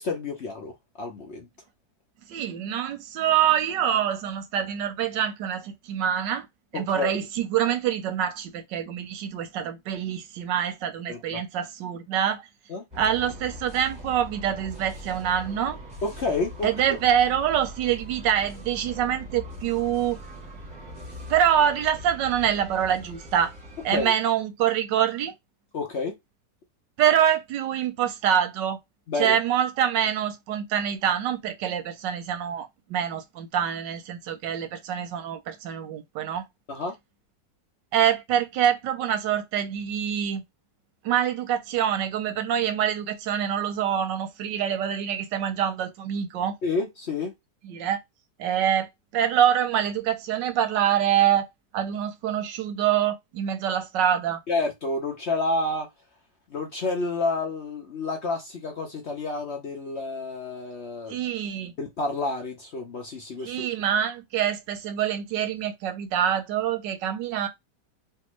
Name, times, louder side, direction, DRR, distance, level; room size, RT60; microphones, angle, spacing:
voice 1, 0.0-1.5 6.7-7.1 11.1-11.4 12.7-12.8 16.0-17.0 23.9-24.1 25.7-26.1 29.1-29.4 36.7-36.9 46.6-47.3 54.5-55.9 56.5-61.2 61.8-63.7, left 3 dB, 55° left, 0.8 m, -29 dB
voice 2, 2.3-6.5 6.7-12.5 13.0-15.8 16.6-20.2 21.3-23.5 23.8-25.3 27.0-28.8 29.2-36.4 37.9-40.4 41.0-46.6 47.6-48.0 48.4-51.5 51.7-54.4 61.1-61.7 63.4-67.5, right 9 dB, 90° right, 1.4 m, -25 dB
sound 1, 12.9-24.0, equal, 15° right, 1.2 m, -41 dB
3.4 x 2.6 x 3.0 m
omnidirectional pair, 1.9 m